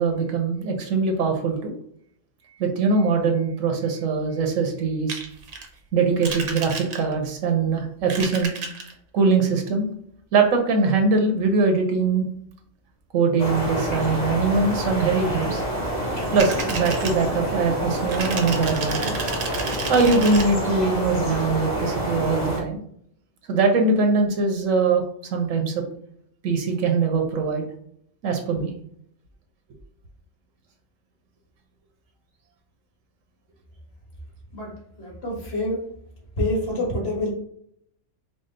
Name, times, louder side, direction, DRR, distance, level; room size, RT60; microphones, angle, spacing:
voice 1, 0.0-1.7 2.6-5.2 5.9-8.5 9.1-9.9 10.3-12.2 13.1-15.6 16.3-19.1 19.9-22.8 23.5-25.0 25.3-25.8 26.4-27.7 28.2-28.7, right 4 dB, 85° right, 4 dB, 1.2 m, -22 dB
sound 1, 5.1-5.7 6.2-7.2 8.0-8.9 16.1-17.2 18.1-20.4, right 4 dB, 50° right, 0.8 m, -32 dB
sound 2, 13.4-22.6, equal, 35° left, 1.3 m, -27 dB
voice 2, 34.5-35.8 36.4-37.3, left 1 dB, 50° left, -2 dB, 1.8 m, -27 dB
5.0 x 2.0 x 3.8 m, 0.67 s
omnidirectional pair, 1.3 m